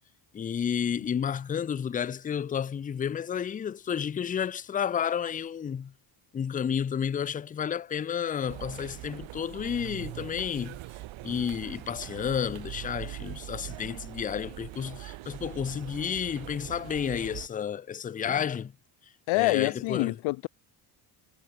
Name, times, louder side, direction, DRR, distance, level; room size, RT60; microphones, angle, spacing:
voice 1, 0.3-5.9 6.3-10.8 11.2-18.7 19.3-20.1, left 8 dB, 20° left, 0.4 m, -31 dB
sound 1, 8.5-17.5, right 17 dB, 75° right, 2.7 m, -42 dB
voice 2, 19.3-20.5, left 23 dB, 80° left, 0.7 m, -26 dB
cardioid pair, 145°, 47 cm